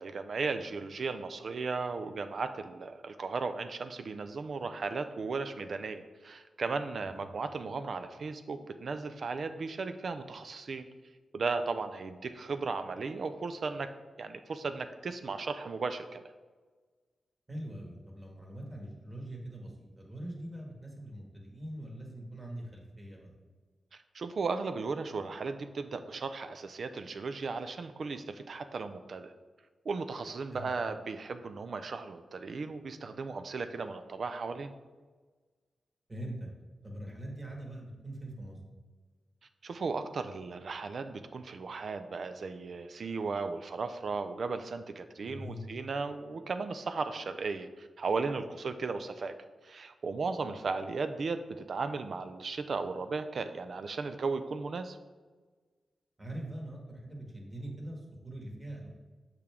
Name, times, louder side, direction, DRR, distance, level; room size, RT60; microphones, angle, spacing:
voice 1, 0.0-10.9 11.3-13.9 14.2-16.2 23.9-29.3 29.9-34.7 39.6-49.4 49.6-55.0, right 4 dB, 65° right, 9 dB, 0.4 m, -36 dB
voice 2, 17.5-23.3 30.5-30.7 36.1-36.5 36.8-38.6 45.2-45.6 56.2-58.9, right 1 dB, 30° right, 0 dB, 1.7 m, -42 dB
6.6 x 4.5 x 3.6 m, 1.4 s
cardioid pair, 45°, 0 cm